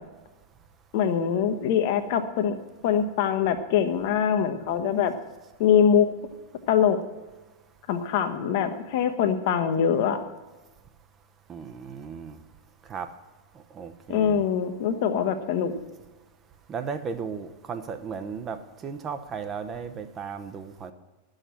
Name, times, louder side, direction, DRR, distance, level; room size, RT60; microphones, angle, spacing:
voice 1, 0.9-2.6 2.8-5.1 5.6-6.1 6.7-7.0 7.9-10.2 14.1-15.7, left 8 dB, 50° left, 8 dB, 0.9 m, -23 dB
voice 2, 11.5-12.4 12.9-13.1 13.7-14.4 16.7-20.9, right 6 dB, 25° right, 8 dB, 0.7 m, -35 dB
11.0 x 6.5 x 7.3 m, 1.2 s
figure-of-eight pair, 90°, 0 cm